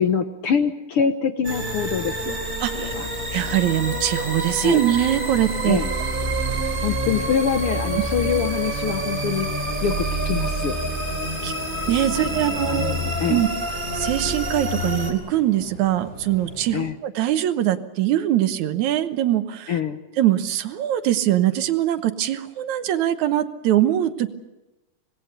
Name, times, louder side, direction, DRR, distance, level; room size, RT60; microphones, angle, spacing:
voice 1, 0.0-2.4 2.7-3.1 4.6-4.8 5.7-5.9 6.8-9.5 9.8-10.8 12.1-13.4 16.7-16.9 19.7-20.0, left 7 dB, 60° left, 7 dB, 1.6 m, -25 dB
sound 1, 1.4-15.1, right 1 dB, 15° right, 3.4 m, -27 dB
voice 2, 2.6-2.9 3.3-5.8 11.4-11.5 11.9-13.0 13.3-13.5 13.9-19.8 20.2-24.3, right 12 dB, 75° right, 10 dB, 2.3 m, -22 dB
Bus, 2.9-16.8, left 2 dB, 80° left, 6.9 m, -42 dB
26.0 x 19.5 x 6.8 m, 1.0 s
omnidirectional pair, 3.5 m